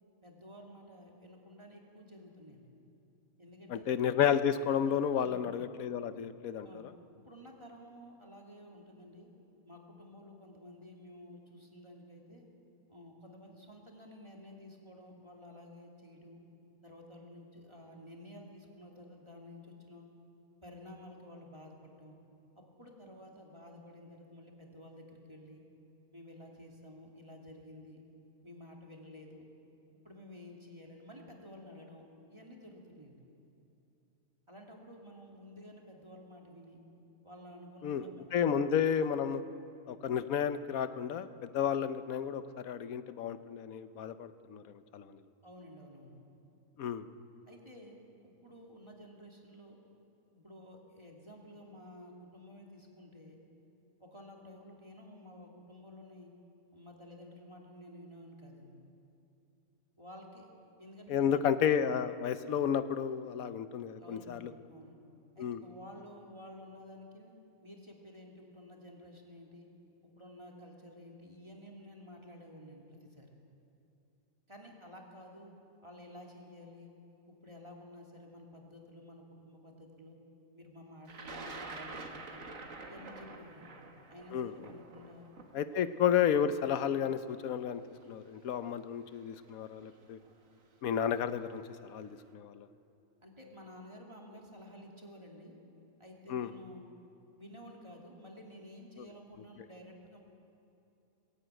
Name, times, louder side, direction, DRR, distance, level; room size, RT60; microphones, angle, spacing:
voice 1, 0.2-2.7 3.4-3.9 5.2-5.5 6.6-6.9 7.2-9.3 9.6-12.4 12.9-16.4 16.8-20.1 20.6-22.2 22.5-25.6 26.1-28.0 28.4-29.5 30.0-32.0 32.3-33.2 34.5-36.8 37.2-38.3 45.4-46.2 47.5-49.8 50.3-53.4 54.0-56.3 56.7-58.8 60.0-60.5 60.8-61.4 64.0-65.0 65.3-67.3 67.6-69.7 70.0-73.3 74.5-75.5 75.8-76.9 77.3-80.2 80.5-82.6 82.9-83.8 84.1-85.3 85.7-85.8 93.2-95.6 96.0-96.9 97.4-100.2, left 1 dB, 20° right, -1 dB, 2.7 m, -52 dB
voice 2, 3.7-6.7 37.8-38.0 38.3-39.4 39.9-44.6 44.9-45.1 46.8-47.1 61.1-64.5 65.4-65.6 84.3-84.5 85.5-87.8 88.1-90.2 90.8-92.7 96.3-96.5, left 8 dB, 85° left, 12 dB, 1.3 m, -31 dB
Thunder, 81.1-87.1 88.0-88.1 89.2-89.5 89.8-90.3, right 3 dB, 70° right, 2.0 m, -47 dB
20.5 x 16.0 x 9.0 m, 2.9 s
omnidirectional pair, 1.4 m